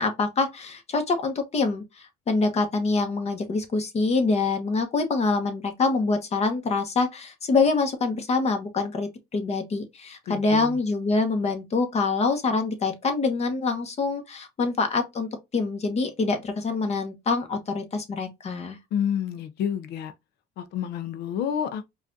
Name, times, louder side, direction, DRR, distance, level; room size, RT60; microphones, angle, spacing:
voice 1, 0.0-18.8, left 3 dB, 40° left, 1.1 m, -25 dB
voice 2, 10.3-10.8 18.9-20.1 20.6-21.8, left 8 dB, 75° left, 0.5 m, -29 dB
4.8 x 2.5 x 2.6 m
cardioid pair, 110°, 17 cm